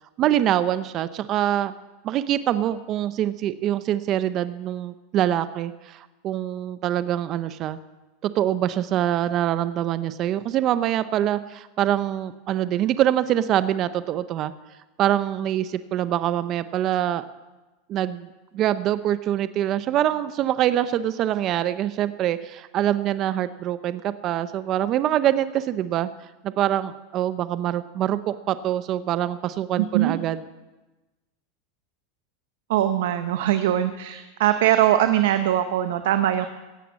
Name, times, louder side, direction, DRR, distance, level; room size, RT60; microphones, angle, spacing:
voice 1, 0.2-1.7 2.0-7.8 8.2-14.5 15.0-17.2 17.9-18.3 18.5-26.1 26.4-30.4, right 11 dB, 40° right, 13 dB, 0.6 m, -24 dB
voice 2, 29.8-30.2 32.7-36.5, right 12 dB, 75° right, 9 dB, 0.9 m, -21 dB
16.5 x 9.3 x 7.4 m, 1.1 s
supercardioid pair, 130°, 0 cm